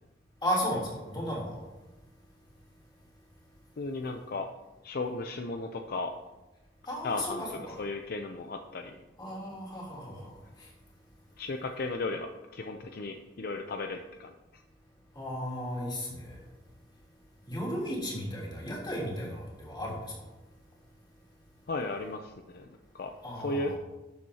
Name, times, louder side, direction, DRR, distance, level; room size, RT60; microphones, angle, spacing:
voice 1, 0.4-1.6 6.9-7.8 9.2-10.7 15.1-16.5 17.5-20.3 23.2-23.8, equal, 25° left, -5 dB, 3.3 m, -35 dB
voice 2, 3.8-4.5 4.8-6.1 7.0-7.4 7.8-9.0 11.4-14.6 21.7-22.7 22.9-23.8, left 3 dB, 55° left, 5 dB, 0.5 m, -35 dB
11.5 x 7.6 x 2.8 m, 1.1 s
head